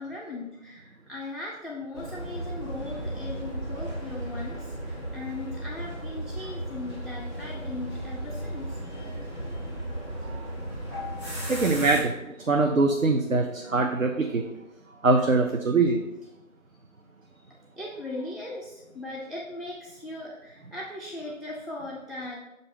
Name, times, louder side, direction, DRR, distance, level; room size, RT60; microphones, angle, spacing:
voice 1, 0.0-9.1 17.6-22.4, left 2 dB, ahead, -4 dB, 0.5 m, -38 dB
sound 1, 1.9-12.0, right 1 dB, 20° right, 2.0 m, -35 dB
voice 2, 10.2-10.7 11.4-14.4 15.0-16.0, right 3 dB, 70° right, 3 dB, 0.7 m, -23 dB
7.0 x 2.7 x 5.5 m, 0.94 s
figure-of-eight pair, 180°, 42 cm